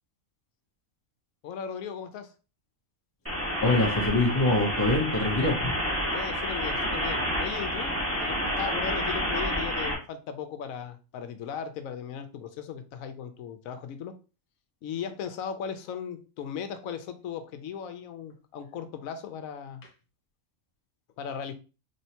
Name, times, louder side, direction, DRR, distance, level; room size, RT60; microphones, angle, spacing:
voice 1, 1.4-2.3 6.1-14.2 14.8-19.8 21.2-21.5, left 7 dB, 80° left, 1.0 m, -37 dB
sound 1, 3.3-9.9, equal, 10° right, 1.6 m, -29 dB
voice 2, 3.6-5.7, left 2 dB, 25° left, 0.4 m, -24 dB
4.4 x 3.3 x 2.8 m
omnidirectional pair, 1.4 m